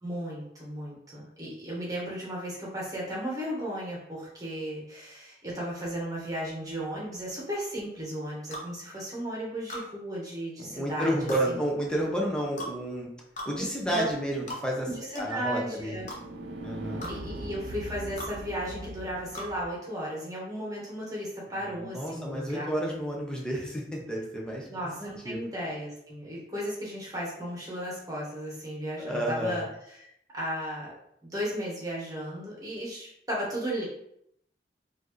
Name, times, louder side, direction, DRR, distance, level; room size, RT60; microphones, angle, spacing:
voice 1, 0.0-11.6 13.9-14.0 14.8-16.1 17.0-22.7 24.7-30.9 31.2-33.8, equal, 20° right, -4 dB, 1.4 m, -35 dB
sound 1, 8.5-8.7 9.7-9.9 11.3-11.4 12.6-12.8 13.4-13.5 14.5-14.6 15.1-15.3 16.1-16.2 17.0-17.1 18.2-18.3 19.3-19.5, equal, 45° left, 0.9 m, -37 dB
voice 2, 10.6-13.1 13.5-14.9 15.2-16.0 16.6-17.1 21.8-24.7 25.0-25.4 29.0-29.6, right 1 dB, 5° left, -2 dB, 0.7 m, -31 dB
sound 2, 14.1-19.6, right 1 dB, 75° right, 0.6 m, -42 dB
4.3 x 2.7 x 3.1 m, 0.73 s
head